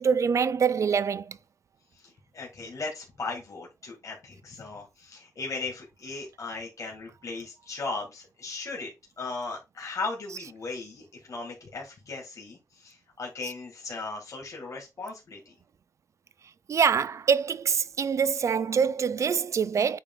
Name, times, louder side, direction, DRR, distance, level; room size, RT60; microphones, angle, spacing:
voice 1, 0.0-1.4 16.7-20.0, right 6 dB, 60° right, 0.4 m, -25 dB
voice 2, 2.0-8.9 9.2-15.4, left 3 dB, 65° left, 2.1 m, -37 dB
8.2 x 3.4 x 3.8 m
wide cardioid pair, 165°, 6 cm